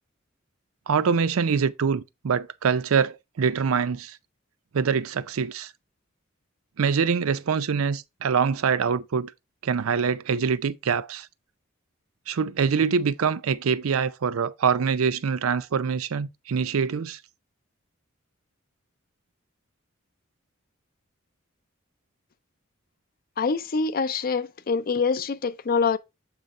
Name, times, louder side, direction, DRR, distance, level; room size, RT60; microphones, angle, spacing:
voice 1, 0.9-4.2 4.7-5.7 6.8-9.3 9.6-11.3 12.3-17.2, right 6 dB, 85° right, 0.5 m, -24 dB
voice 2, 23.4-26.0, left 5 dB, 45° left, 0.4 m, -25 dB
7.3 x 3.9 x 4.3 m
head